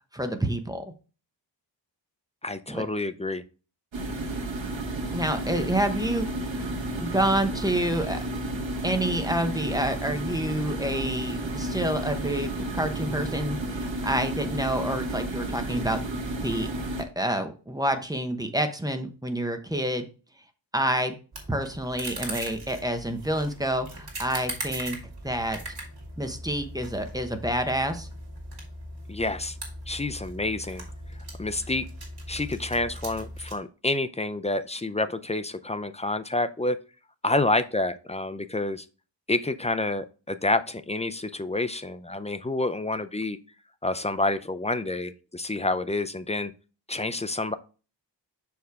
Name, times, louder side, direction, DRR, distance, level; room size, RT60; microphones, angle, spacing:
voice 1, 0.1-0.8 2.7-2.8 5.1-8.2 8.8-16.0 16.4-16.7 17.2-20.1 20.7-21.1 21.5-25.0 25.2-25.6 26.2-28.1, right 1 dB, 10° right, 6 dB, 0.8 m, -28 dB
voice 2, 2.4-3.4 29.1-29.6 29.9-30.9 31.4-31.9 32.3-36.8 37.2-38.9 39.3-43.4 43.8-46.5 46.9-47.5, left 2 dB, 15° left, 10 dB, 0.3 m, -28 dB
sound 1, 3.9-17.0, right 1 dB, 85° right, 1.2 m, -32 dB
sound 2, 21.3-33.5, right 1 dB, 60° right, 2.2 m, -39 dB
6.3 x 4.7 x 3.4 m, 0.35 s
wide cardioid pair, 95°, 44 cm